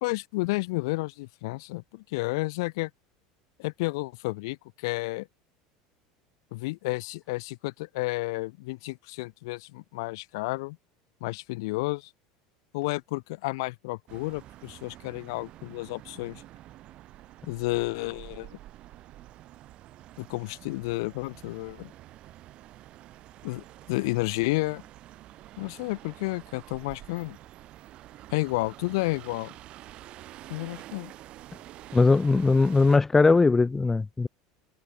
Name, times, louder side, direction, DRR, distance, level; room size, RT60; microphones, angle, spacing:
voice 1, 0.0-2.9 3.6-5.3 6.5-10.8 11.2-12.1 12.7-16.4 17.5-18.5 20.2-21.9 23.4-24.8 25.6-27.4 28.3-29.5 30.5-31.1, left 23 dB, 80° left, 0.8 m, -31 dB
sound 1, 14.1-33.0, right 14 dB, 45° right, 5.6 m, -48 dB
voice 2, 31.9-34.3, left 3 dB, 15° left, 0.8 m, -20 dB
supercardioid pair, 125°, 2 cm